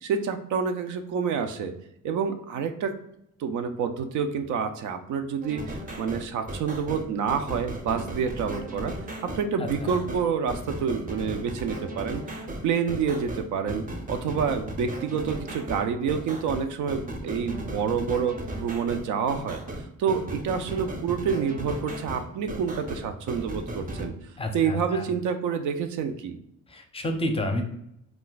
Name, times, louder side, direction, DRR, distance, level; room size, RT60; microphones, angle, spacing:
voice 1, 0.0-1.7 2.0-2.9 3.4-8.9 9.2-19.6 20.0-24.1 24.5-26.4, right 6 dB, 75° right, 7 dB, 0.4 m, -28 dB
sound 1, 5.4-24.1, right 1 dB, 30° right, 0.6 m, -36 dB
voice 2, 9.6-9.9 24.4-25.1 26.7-27.6, left 1 dB, 20° left, 5 dB, 0.5 m, -30 dB
2.3 x 2.2 x 3.8 m, 0.76 s
cardioid pair, 90°, 30 cm